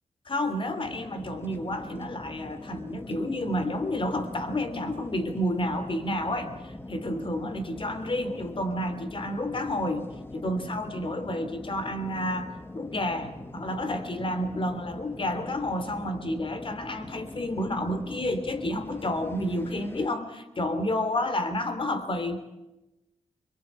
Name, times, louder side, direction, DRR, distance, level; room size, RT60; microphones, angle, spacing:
voice 1, 0.2-22.4, left 1 dB, 40° left, 9 dB, 2.9 m, -30 dB
sound 1, 0.8-20.1, left 1 dB, 20° left, 1.5 m, -43 dB
23.5 x 22.0 x 8.2 m, 0.99 s
cardioid pair, 70°, 13 cm